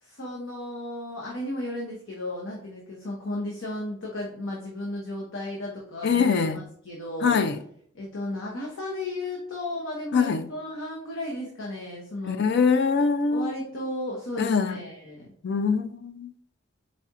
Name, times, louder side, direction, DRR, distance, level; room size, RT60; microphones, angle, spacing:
voice 1, 0.0-7.4 7.9-12.4 13.3-15.3, left 1 dB, 80° left, 0.9 m, -34 dB
voice 2, 6.0-6.6 7.2-7.6 10.1-10.5 12.3-13.5 14.4-14.8 15.4-16.3, left 5 dB, 55° left, 0.4 m, -23 dB
4.2 x 4.1 x 2.4 m
head